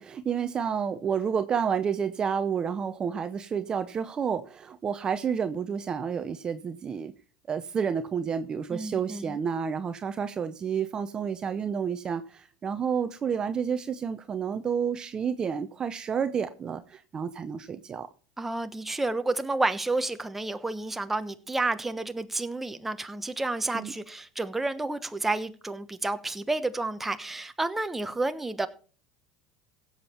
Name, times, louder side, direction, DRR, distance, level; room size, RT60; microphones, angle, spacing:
voice 1, 0.0-7.1 7.5-18.1 23.7-23.9, right 7 dB, 30° right, 0.7 m, -30 dB
voice 2, 8.7-9.4 18.4-28.7, right 2 dB, 10° right, 1.0 m, -30 dB
16.5 x 7.4 x 4.4 m
hypercardioid pair, 95°, 3 cm